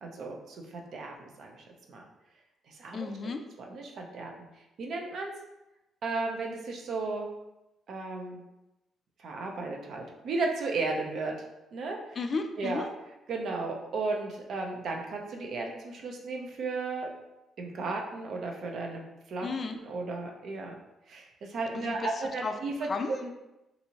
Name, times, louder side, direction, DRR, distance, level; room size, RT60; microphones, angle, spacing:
voice 1, 0.0-2.0 2.7-3.1 3.6-4.3 4.8-5.3 6.0-7.3 7.9-8.4 9.2-11.3 11.7-12.0 12.6-12.9 13.3-17.1 17.6-19.0 19.3-20.7 21.1-23.3, right 3 dB, 65° right, 1 dB, 0.5 m, -34 dB
voice 2, 2.9-3.4 12.2-12.9 19.4-19.8 21.7-22.5 22.9-23.1, left 4 dB, 45° left, 6 dB, 0.3 m, -33 dB
2.7 x 2.6 x 2.8 m, 0.94 s
cardioid pair, 90°, 0 cm